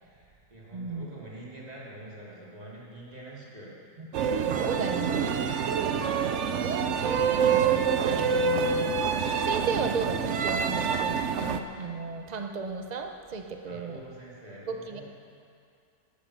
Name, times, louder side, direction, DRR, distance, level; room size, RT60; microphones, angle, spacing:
voice 1, 0.0-3.7 4.5-6.5 13.7-15.0, right 1 dB, 20° right, -6 dB, 3.0 m, -46 dB
voice 2, 0.7-1.1 4.0-4.1 4.4-5.5 6.6-9.0 9.4-14.0 14.7-15.0, right 5 dB, 80° right, 5 dB, 0.3 m, -34 dB
sound 1, 4.1-11.6, right 6 dB, 65° right, 0.7 m, -26 dB
12.5 x 12.5 x 6.5 m, 2.3 s
omnidirectional pair, 1.8 m